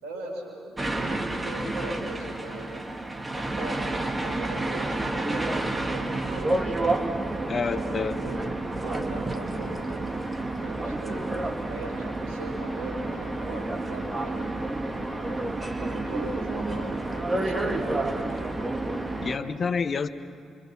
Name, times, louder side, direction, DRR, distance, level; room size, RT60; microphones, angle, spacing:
voice 1, 0.0-2.8 3.6-7.0 7.7-8.4 8.8-10.1 10.6-14.5 15.1-18.5, right 2 dB, 70° right, -1 dB, 5.3 m, -39 dB
sound 1, 0.8-19.4, right 2 dB, 20° right, 2.2 m, -30 dB
voice 2, 7.5-8.2 19.2-20.1, left 5 dB, 45° left, 11 dB, 1.0 m, -28 dB
27.5 x 24.5 x 6.0 m, 2.3 s
figure-of-eight pair, 40°, 0 cm